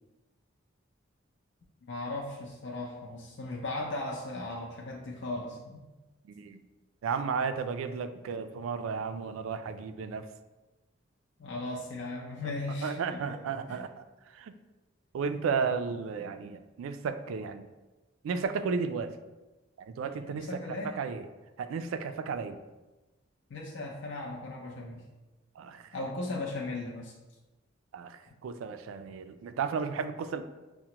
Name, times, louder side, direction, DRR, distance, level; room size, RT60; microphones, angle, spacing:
voice 1, 1.9-5.8 11.4-13.4 13.7-13.8 20.3-21.0 23.5-25.0 25.9-27.1, left 2 dB, 65° left, -1 dB, 0.5 m, -37 dB
voice 2, 6.2-6.6 7.0-10.3 12.4-12.5 12.8-14.5 15.1-17.6 18.2-19.2 19.8-20.6 20.8-21.3 21.6-22.6 25.6-25.9 27.9-30.4, right 5 dB, 85° right, 10 dB, 0.3 m, -34 dB
5.9 x 2.1 x 2.9 m, 1.1 s
head